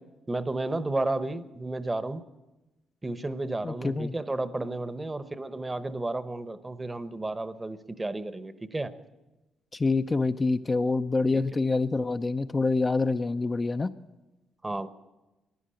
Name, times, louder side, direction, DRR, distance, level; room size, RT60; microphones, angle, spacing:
voice 1, 0.3-2.2 3.0-8.9 11.3-11.4 14.6-14.9, right 2 dB, 20° right, 12 dB, 0.9 m, -32 dB
voice 2, 3.6-4.1 9.7-13.9, left 3 dB, 25° left, 8 dB, 0.5 m, -26 dB
15.5 x 11.0 x 7.6 m, 1.1 s
cardioid pair, 90°, 0 cm